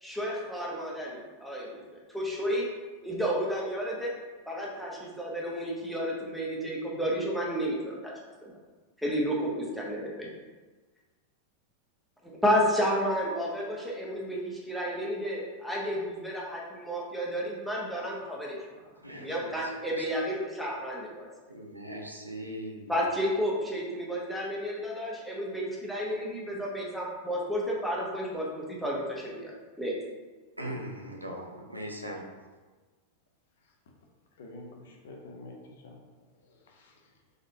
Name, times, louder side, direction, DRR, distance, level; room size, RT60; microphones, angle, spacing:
voice 1, 0.0-2.7 3.0-4.1 4.5-8.1 8.4-8.5 9.0-10.3 12.2-18.6 19.2-21.3 22.9-29.5 29.8-29.9, equal, ahead, -4 dB, 0.9 m, -31 dB
voice 2, 19.0-19.5 19.9-20.0 21.5-22.9 30.6-32.2, equal, 85° right, 0 dB, 0.6 m, -39 dB
voice 3, 34.4-35.6 35.8-36.0 36.5-37.1, left 2 dB, 60° left, 1 dB, 0.6 m, -48 dB
3.8 x 3.6 x 2.7 m, 1.3 s
figure-of-eight pair, 90°, 0 cm